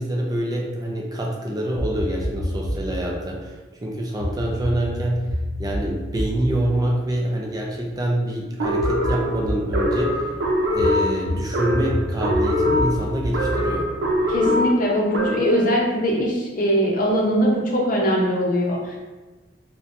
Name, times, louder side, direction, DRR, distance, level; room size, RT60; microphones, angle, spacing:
voice 1, 0.0-5.3 5.6-10.3 10.7-13.9, right 1 dB, 20° right, -1 dB, 0.4 m, -26 dB
sound 1, 1.8-3.1 4.2-7.9 8.8-10.0 10.8-14.7, equal, 85° left, 0.6 m, -29 dB
sound 2, 8.6-15.6, equal, 85° right, 0.6 m, -23 dB
voice 2, 14.3-19.0, equal, 50° left, -1 dB, 0.6 m, -21 dB
4.0 x 2.2 x 2.5 m, 1.2 s
head